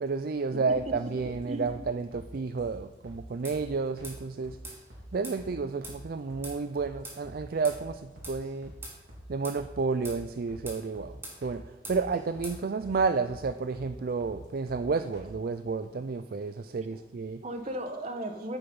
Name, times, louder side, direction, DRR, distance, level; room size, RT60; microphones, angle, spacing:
voice 1, 0.0-4.6 5.1-8.7 9.3-11.6 11.9-17.4, right 4 dB, 55° right, 10 dB, 0.4 m, -31 dB
sound 1, 0.7-1.3 1.6-1.8 2.1-2.3 2.6-2.7 3.0-3.2 3.5-3.7 4.0-4.1 4.4-5.1 5.4-5.5 5.8-6.0 6.3-6.5 6.8-6.9 7.2-7.4 7.7-7.9 8.2-8.8 9.1-9.2 9.5-9.7 10.0-10.2 10.5-10.6 10.9-11.1 11.4-11.6 11.9-12.5 12.8-13.0 13.3-13.4 13.7-13.9 14.2-14.4 14.7-14.8 15.1-15.3, equal, 85° right, 3.3 m, -48 dB
voice 2, 1.3-1.7 16.8-17.0 17.4-18.6, right 1 dB, 40° right, 6 dB, 1.2 m, -36 dB
sound 2, 3.4-3.6 4.0-4.2 4.6-4.8 5.2-5.4 5.8-6.0 6.4-6.6 7.0-7.2 7.6-7.8 8.2-8.4 8.8-9.0 9.4-9.6 10.0-10.2 10.7-10.8 11.2-11.4 11.8-12.0 12.4-12.6, right 1 dB, 15° right, 2.6 m, -42 dB
14.5 x 6.9 x 5.4 m, 1.2 s
head